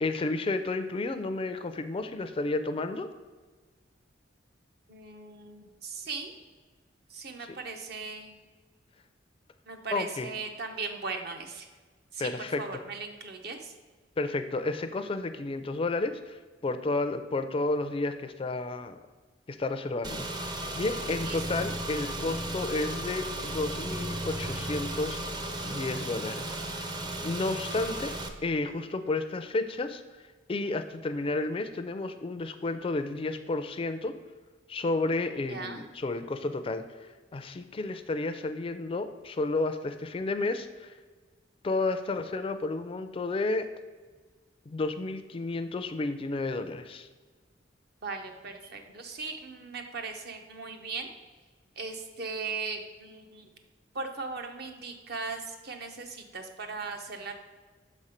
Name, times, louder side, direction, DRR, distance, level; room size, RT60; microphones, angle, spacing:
voice 1, 0.0-3.1 9.9-10.3 12.2-12.6 14.2-19.0 19.5-25.3 25.6-28.1 28.4-30.0 30.5-34.1 34.7-40.9 41.6-43.7 44.7-47.1, left 2 dB, 30° left, 9 dB, 0.4 m, -31 dB
voice 2, 4.9-6.3 7.1-8.3 9.7-11.7 12.1-12.3 12.6-13.7 21.1-21.7 35.5-35.9 48.0-51.1 51.8-53.5 53.9-57.4, right 4 dB, 60° right, 5 dB, 0.8 m, -38 dB
Car / Engine, 20.0-28.3, right 1 dB, 25° right, 0.5 m, -35 dB
6.6 x 4.2 x 5.0 m, 1.4 s
head